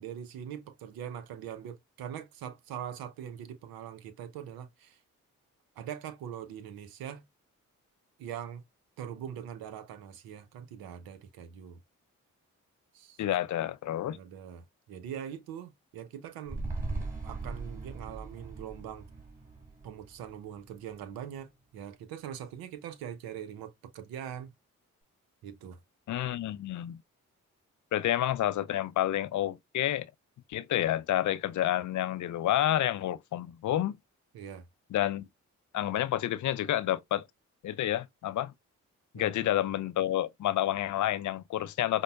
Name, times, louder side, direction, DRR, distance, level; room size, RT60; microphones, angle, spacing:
voice 1, 0.0-5.0 5.8-7.2 8.2-8.6 9.0-11.8 12.9-13.2 14.1-16.6 17.2-19.1 19.8-24.5 25.4-25.8 34.3-34.7 39.1-39.5, right 9 dB, 85° right, 0.7 m, -42 dB
voice 2, 13.2-14.2 26.1-27.0 27.9-30.1 30.5-34.0 34.9-35.3 35.7-37.2 37.6-38.5 39.1-42.0, left 12 dB, 55° left, 0.5 m, -29 dB
sound 1, 16.5-21.0 21.3-21.4, right 3 dB, 25° right, 2.3 m, -39 dB
5.2 x 2.1 x 2.2 m
supercardioid pair, 45°, 35 cm